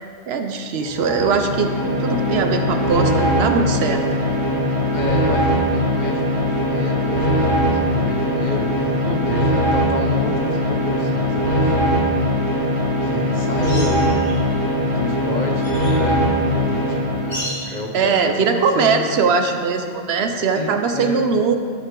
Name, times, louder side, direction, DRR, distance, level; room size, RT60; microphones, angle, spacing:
voice 1, 0.3-1.7 2.0-4.0 7.7-8.1 9.0-9.3 17.7-21.6, right 5 dB, 80° right, 6 dB, 1.0 m, -21 dB
sound 1, 0.8-17.7, equal, 55° right, 1.6 m, -20 dB
voice 2, 4.9-9.0 9.2-12.6 13.0-14.3 14.6-19.2 20.5-21.2, left 2 dB, 45° left, 1 dB, 0.9 m, -30 dB
sound 2, 13.6-14.6 15.0-16.0 17.3-17.8 20.1-20.2, left 1 dB, 85° left, 2.3 m, -33 dB
13.0 x 5.4 x 3.8 m, 2.1 s
omnidirectional pair, 1.0 m